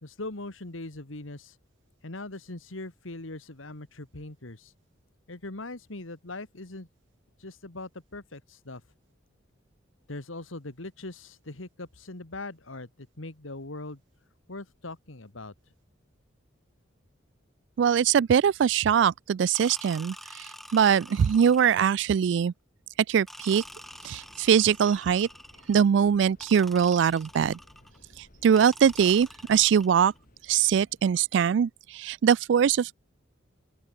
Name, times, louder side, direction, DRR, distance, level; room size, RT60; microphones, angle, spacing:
voice 1, 0.0-1.6 2.0-4.7 5.3-6.9 7.4-8.8 10.1-14.0 14.5-15.5, left 2 dB, 90° left, 2.1 m, -40 dB
voice 2, 17.8-22.5 23.1-23.6 24.0-25.3 25.7-27.6 28.4-30.1 30.5-33.0, right 7 dB, 60° right, 0.3 m, -22 dB
sound 1, 19.5-22.1 23.3-25.9 26.4-28.0 28.5-30.2, equal, ahead, 2.0 m, -47 dB
sound 2, 23.5-31.2, equal, 45° left, 6.0 m, -58 dB
open air
head